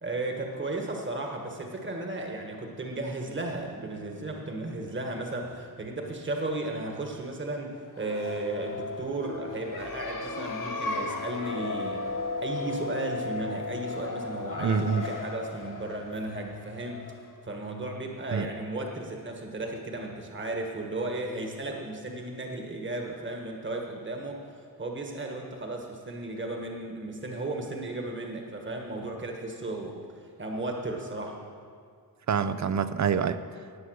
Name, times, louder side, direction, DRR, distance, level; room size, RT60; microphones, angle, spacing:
voice 1, 0.0-12.0 12.4-17.0 17.4-24.4 24.8-29.9 30.4-31.4, right 2 dB, 30° right, 2 dB, 1.5 m, -34 dB
sound 1, 7.9-17.4, left 3 dB, 55° left, 1.3 m, -35 dB
voice 2, 14.6-15.1 18.3-18.5 32.3-33.6, right 6 dB, 50° right, 13 dB, 0.6 m, -27 dB
18.5 x 8.0 x 6.4 m, 2.2 s
wide cardioid pair, 155°, 38 cm